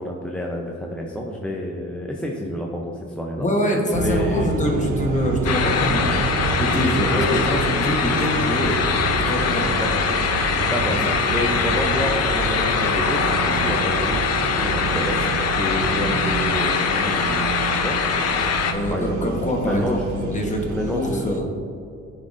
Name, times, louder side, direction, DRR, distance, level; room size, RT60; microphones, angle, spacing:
voice 1, 0.0-3.5 4.0-4.5 7.1-7.5 9.7-10.0 10.6-11.0 11.3-15.3 15.5-17.4 17.7-18.0 18.9-19.4 19.6-20.1 20.7-21.2, left 1 dB, 5° left, -1 dB, 0.5 m, -28 dB
voice 2, 3.4-6.2 6.6-8.8 9.1-9.8 18.7-21.4, left 1 dB, 25° left, 0 dB, 1.1 m, -24 dB
sound 1, 3.9-21.4, right 4 dB, 70° right, 0.5 m, -28 dB
sound 2, 5.4-18.7, left 6 dB, 55° left, 0.6 m, -23 dB
9.5 x 4.0 x 2.5 m, 2.5 s
cardioid pair, 90°, 30 cm